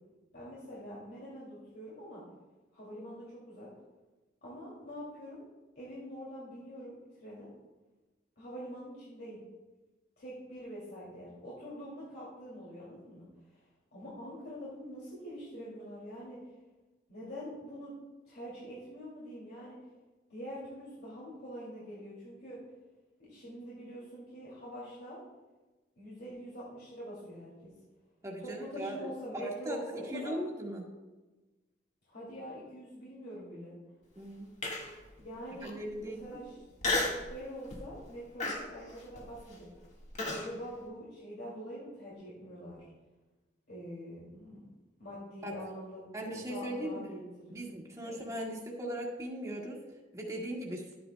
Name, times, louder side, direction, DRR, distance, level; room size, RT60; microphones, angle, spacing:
voice 1, 0.3-2.2 2.7-3.7 4.4-5.4 5.8-7.5 8.4-9.4 10.2-13.3 13.9-16.4 17.1-17.9 18.3-19.8 20.3-22.6 23.2-25.2 26.0-27.7 28.4-30.4 32.1-33.7 35.2-36.6 37.3-39.7 40.3-42.9 43.7-44.6 45.0-46.1 46.3-47.7 48.0-48.2, equal, 65° left, -7 dB, 2.5 m, -45 dB
voice 2, 28.2-29.8 30.1-30.9 34.1-34.5 35.6-36.4 45.4-45.5 46.1-47.1 47.5-49.8 50.1-50.9, right 1 dB, 20° right, -3 dB, 1.6 m, -39 dB
Human voice, 34.6-35.1 35.6-35.7 36.8-37.3 37.7-38.0 38.4-40.5, left 2 dB, 40° left, 1.6 m, -33 dB
12.0 x 9.3 x 2.2 m, 1.2 s
head